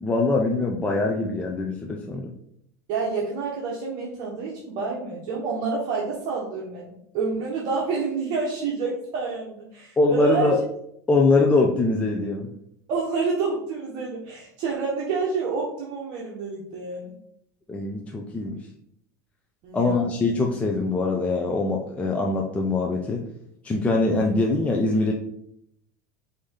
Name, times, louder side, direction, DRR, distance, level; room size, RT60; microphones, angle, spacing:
voice 1, 0.0-2.3 10.0-10.6 11.1-12.5 17.7-18.6 19.7-23.2 23.6-25.1, left 3 dB, 15° left, 0 dB, 0.5 m, -23 dB
voice 2, 2.9-10.5 12.9-17.2 19.6-20.1, right 4 dB, 50° right, -3 dB, 1.0 m, -28 dB
5.0 x 2.7 x 3.6 m, 0.73 s
supercardioid pair, 130°, 9 cm